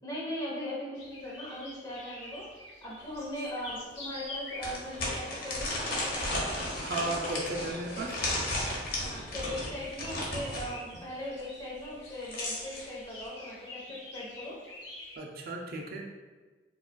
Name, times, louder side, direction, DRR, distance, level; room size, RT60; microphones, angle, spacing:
voice 1, 0.0-2.5 2.8-6.4 9.0-14.6, left 1 dB, 20° left, -6 dB, 0.9 m, -39 dB
sound 1, 0.9-15.2, left 1 dB, 85° left, 1.0 m, -47 dB
sound 2, 3.1-3.2 3.7-3.8 4.6-10.7 11.9-12.8, left 1 dB, 55° left, 0.9 m, -34 dB
voice 2, 6.8-8.2 15.2-16.0, right 2 dB, 55° right, 1 dB, 0.4 m, -35 dB
4.6 x 2.3 x 2.2 m, 1.3 s
head